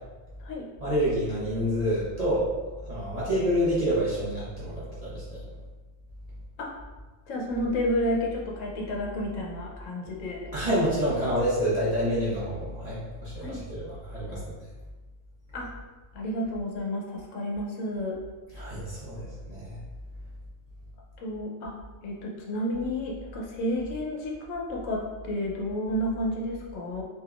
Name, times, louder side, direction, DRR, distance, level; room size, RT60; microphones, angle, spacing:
voice 1, 0.8-2.5 2.9-5.4 10.5-14.4 18.5-19.7, equal, 35° right, -9 dB, 0.7 m, -28 dB
voice 2, 7.3-10.5 13.4-13.6 15.5-15.7 16.1-18.2 21.2-21.7 22.0-27.0, left 1 dB, 75° left, -1 dB, 1.0 m, -31 dB
3.5 x 2.8 x 2.3 m, 1.3 s
omnidirectional pair, 1.4 m